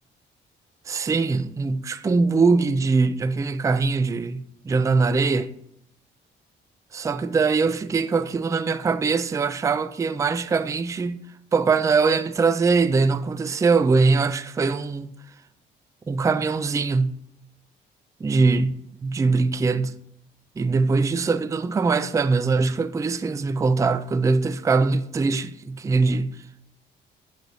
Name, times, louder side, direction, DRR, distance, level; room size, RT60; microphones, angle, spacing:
voice 1, 0.9-5.5 6.9-11.2 11.5-15.1 16.1-17.2 18.2-20.0 20.6-26.4, right 4 dB, 15° right, 0.3 m, -22 dB
9.3 x 3.3 x 3.9 m
cardioid pair, 90°, 20 cm